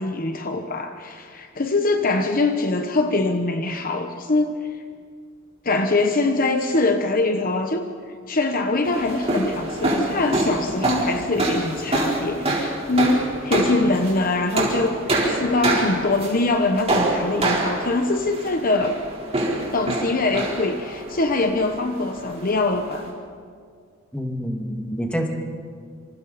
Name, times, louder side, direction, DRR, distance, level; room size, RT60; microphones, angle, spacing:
voice 1, 0.0-4.5 5.6-7.9 8.3-19.0 19.7-23.1, left 2 dB, 45° left, 6 dB, 1.1 m, -23 dB
sound 1, 8.8-23.1, right 2 dB, 30° right, 4.2 m, -26 dB
voice 2, 24.1-25.3, equal, 5° left, 1 dB, 2.3 m, -27 dB
27.0 x 27.0 x 4.3 m, 2.1 s
head